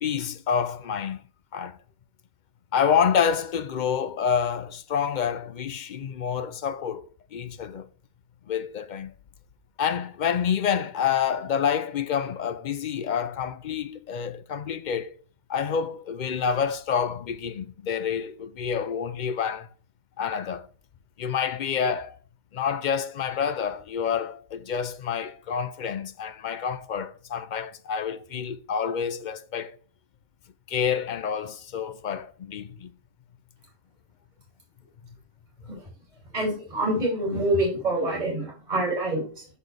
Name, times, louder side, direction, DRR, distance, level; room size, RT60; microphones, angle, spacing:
voice 1, 0.0-1.2 1.5-1.8 2.7-7.9 8.5-9.1 9.8-15.1 15.5-19.7 20.2-20.7 21.2-22.2 22.5-29.8 30.7-32.9, left 7 dB, 60° left, 0.5 m, -28 dB
voice 2, 36.3-39.5, right 1 dB, 35° right, 3.0 m, -26 dB
12.5 x 4.2 x 3.3 m
omnidirectional pair, 1.3 m